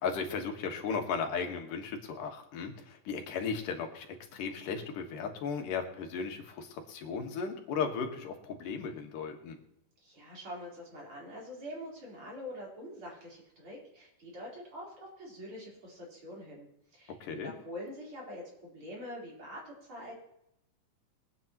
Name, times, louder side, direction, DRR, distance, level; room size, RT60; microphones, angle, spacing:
voice 1, 0.0-9.6 17.1-17.5, left 5 dB, 85° left, 4 dB, 3.0 m, -36 dB
voice 2, 10.0-16.7 16.9-17.1 17.4-20.2, equal, 40° right, -4 dB, 4.6 m, -45 dB
23.0 x 9.2 x 2.9 m, 0.82 s
omnidirectional pair, 3.7 m